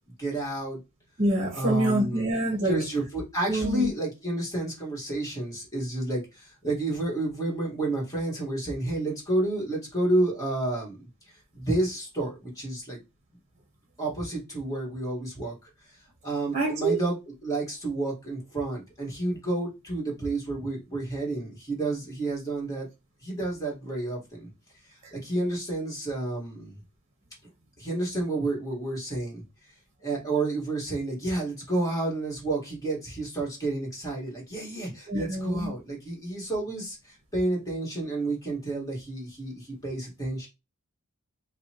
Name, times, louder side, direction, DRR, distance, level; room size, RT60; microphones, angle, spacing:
voice 1, 0.2-0.8 1.5-2.3 2.6-11.1 11.5-13.0 14.0-15.7 16.2-22.9 23.2-24.5 24.9-26.8 27.8-29.4 30.0-40.5, right 2 dB, 15° left, 1.8 m, -30 dB
voice 2, 1.2-2.8 3.5-3.9 16.5-17.0 35.1-35.7, right 1 dB, 30° right, 1.1 m, -26 dB
5.3 x 2.3 x 2.9 m
head